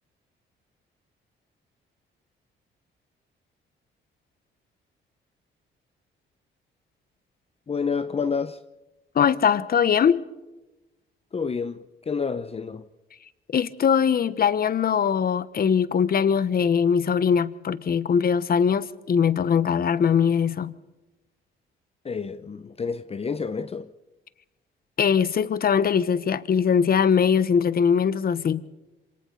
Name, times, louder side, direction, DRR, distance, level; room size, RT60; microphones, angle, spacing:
voice 1, 7.7-8.6 11.3-12.9 22.0-23.9, left 5 dB, 30° left, 0.9 m, -29 dB
voice 2, 9.1-10.2 13.5-20.7 25.0-28.6, left 7 dB, 50° left, 1.2 m, -21 dB
27.5 x 27.0 x 4.1 m
cardioid pair, 90°, 20 cm